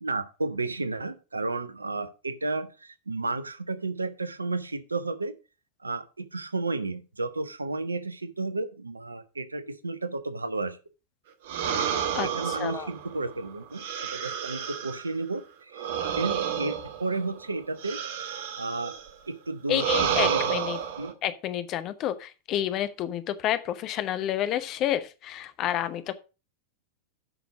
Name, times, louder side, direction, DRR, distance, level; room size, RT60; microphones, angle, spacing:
voice 1, 0.0-5.3 5.8-10.8 12.1-13.8 14.1-15.9 16.1-18.0 18.6-19.0 19.3-20.6 21.0-21.1, right 3 dB, 80° right, 13 dB, 0.8 m, -32 dB
sound 1, 11.5-15.1 15.7-19.1 19.7-21.1, right 8 dB, 55° right, 1.1 m, -30 dB
voice 2, 12.1-12.9 19.7-20.8 21.2-26.1, left 11 dB, 35° left, 12 dB, 0.8 m, -29 dB
7.9 x 6.2 x 4.8 m, 0.32 s
figure-of-eight pair, 90°, 0 cm